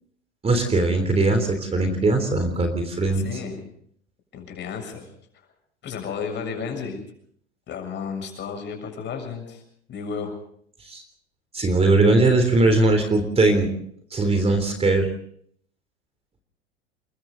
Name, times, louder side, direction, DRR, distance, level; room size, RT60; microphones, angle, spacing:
voice 1, 0.4-3.3 10.8-11.0 11.5-13.7 14.1-15.1, right 2 dB, 15° right, 6 dB, 3.5 m, -20 dB
voice 2, 3.1-3.6 4.3-5.1 5.8-7.0 7.7-9.6 9.9-10.3, left 6 dB, 30° left, 4 dB, 7.1 m, -32 dB
28.5 x 22.5 x 4.0 m, 0.63 s
figure-of-eight pair, 85°, 34 cm